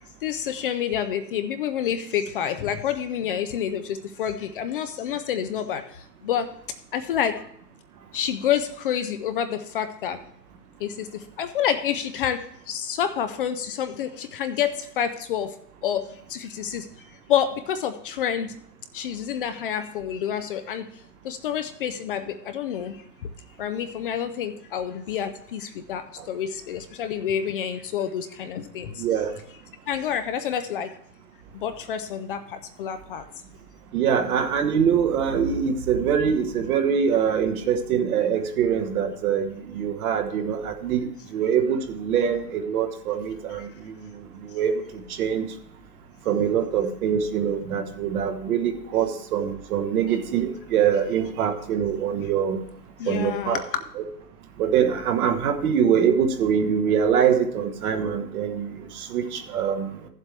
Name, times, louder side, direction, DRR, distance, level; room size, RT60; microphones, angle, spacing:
voice 1, 0.2-6.5 6.9-7.4 8.1-10.2 10.8-15.6 15.8-18.6 18.9-23.3 23.6-29.0 29.9-31.0 31.5-33.2 43.6-43.7 53.0-53.8, left 9 dB, 35° left, 9 dB, 0.4 m, -28 dB
voice 2, 29.0-29.3 33.9-45.5 46.2-52.6 53.1-53.6 54.0-54.1 54.6-59.9, right 8 dB, 60° right, 6 dB, 1.4 m, -24 dB
14.5 x 7.5 x 3.3 m, 0.70 s
hypercardioid pair, 130°, 48 cm